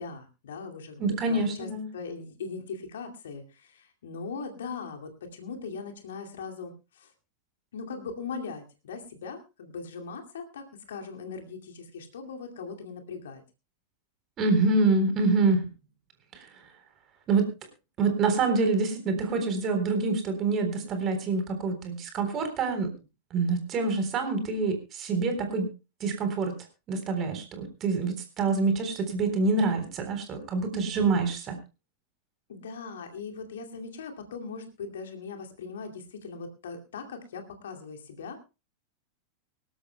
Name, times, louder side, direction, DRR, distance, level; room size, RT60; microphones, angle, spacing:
voice 1, 0.0-7.1 7.7-13.4 32.5-38.4, left 5 dB, 60° left, 4 dB, 2.4 m, -40 dB
voice 2, 1.0-1.9 14.4-15.7 16.3-16.5 17.3-17.5 18.0-22.9 23.3-25.7 26.0-26.5 26.9-31.6, right 3 dB, 30° right, 7 dB, 3.8 m, -26 dB
24.5 x 12.5 x 2.2 m, 0.29 s
figure-of-eight pair, 90°, 0 cm